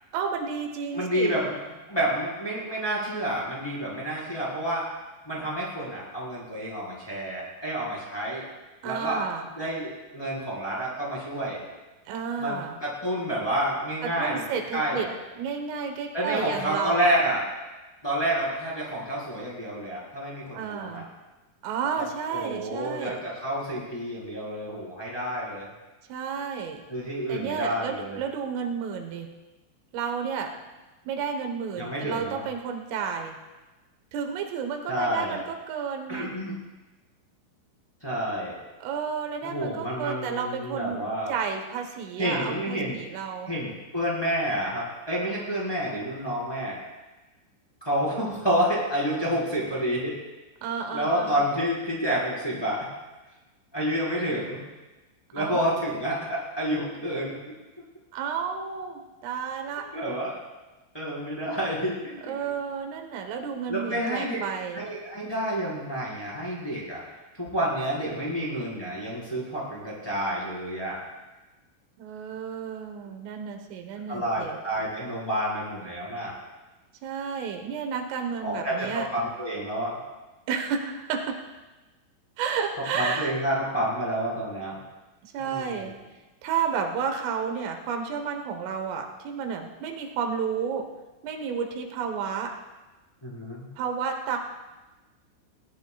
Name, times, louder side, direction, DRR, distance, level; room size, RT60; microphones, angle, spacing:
voice 1, 0.1-1.4 8.8-9.5 12.1-12.8 14.0-15.1 15.4-17.1 20.5-21.1 21.6-23.2 26.1-26.8 27.3-29.3 29.9-30.5 31.1-33.4 34.1-36.3 38.8-41.0 41.3-43.5 50.6-51.5 55.4-55.8 58.1-59.9 62.2-64.9 72.0-74.6 77.0-79.1 80.5-81.4 82.4-83.3 85.2-85.9 86.4-90.9 91.2-92.5 93.8-94.4, right 6 dB, 85° right, 4 dB, 3.8 m, -31 dB
voice 2, 0.9-1.6 1.9-4.8 5.3-8.4 8.8-9.2 9.6-11.6 12.4-14.4 14.7-15.1 16.1-17.4 18.0-21.0 22.0-25.7 26.9-28.2 31.8-32.4 34.9-35.4 36.1-36.6 38.0-38.5 39.4-41.3 42.2-43.0 43.5-46.8 47.8-50.1 50.9-52.9 53.7-54.6 55.3-57.5 59.9-60.4 60.9-62.5 63.7-64.5 64.7-67.0 67.3-71.0 74.1-76.3 78.4-80.0 82.9-84.8 85.4-85.8 93.2-93.7, equal, 5° left, -6 dB, 3.9 m, -29 dB
21.0 x 18.0 x 2.4 m, 1.1 s
omnidirectional pair, 5.6 m